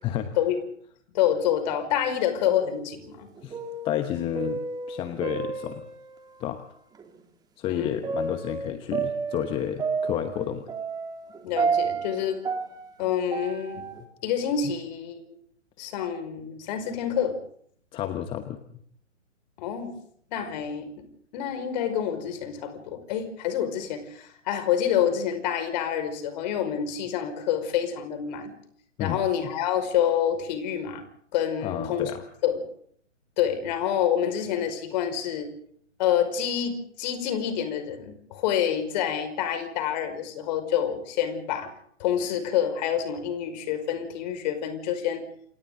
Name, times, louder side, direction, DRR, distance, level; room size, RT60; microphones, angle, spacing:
voice 1, 1.1-3.3 7.7-8.0 11.4-12.4 13.0-13.8 14.2-15.2 15.8-17.4 19.6-19.9 20.3-21.0 21.3-28.5 29.0-31.0 31.3-32.1 32.4-32.6 33.4-35.5 36.0-41.7 42.0-45.2, left 9 dB, 35° left, 8 dB, 5.3 m, -27 dB
sound 1, 2.6-3.1 3.4-6.2 7.0-7.1 8.0-14.0, right 5 dB, 10° right, 3.0 m, -31 dB
voice 2, 3.8-4.6 4.9-5.9 6.4-6.6 7.6-10.7 17.9-18.6 29.0-29.2 31.6-32.2, left 11 dB, 15° left, 9 dB, 1.0 m, -30 dB
28.5 x 28.0 x 3.9 m, 0.64 s
figure-of-eight pair, 135°, 37 cm